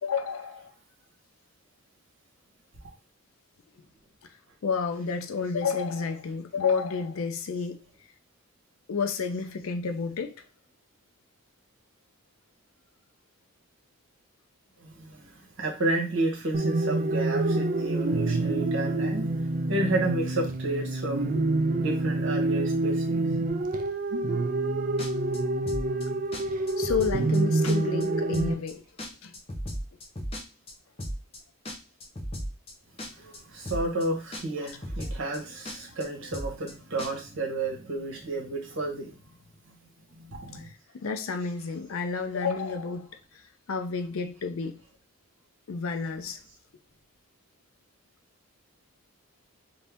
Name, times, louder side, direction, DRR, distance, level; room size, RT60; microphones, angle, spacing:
voice 1, 0.0-0.7 4.6-7.8 8.9-10.4 26.8-28.8 29.2-29.3 41.0-43.1 43.7-44.8 45.7-46.4, left 5 dB, 65° left, 0.4 m, -30 dB
voice 2, 14.8-15.3 15.6-19.3 19.7-21.3 21.8-23.2 33.1-39.2 39.7-39.8 40.2-40.7, right 2 dB, 60° right, 1.1 m, -31 dB
sound 1, 16.5-28.5, right 2 dB, 40° right, 0.3 m, -27 dB
sound 2, 25.0-25.4 25.7-26.0 26.3-26.4 26.7-27.4 27.6-28.0 28.3-28.7 29.0-30.7 31.0-31.4 31.6-32.7 33.0-33.4 33.7-34.0 34.3-34.4 34.7-35.4 35.6-36.0 36.3-36.7 37.0-37.1, equal, 25° left, 0.7 m, -35 dB
2.7 x 2.7 x 3.4 m
head